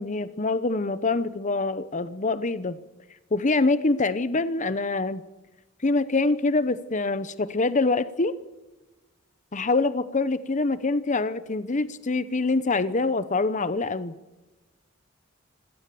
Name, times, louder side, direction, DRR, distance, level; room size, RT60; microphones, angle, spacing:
voice 1, 0.0-2.8 3.3-5.2 5.8-8.4 9.5-14.1, left 3 dB, 35° left, 14 dB, 0.8 m, -25 dB
26.0 x 17.5 x 6.9 m, 1.1 s
head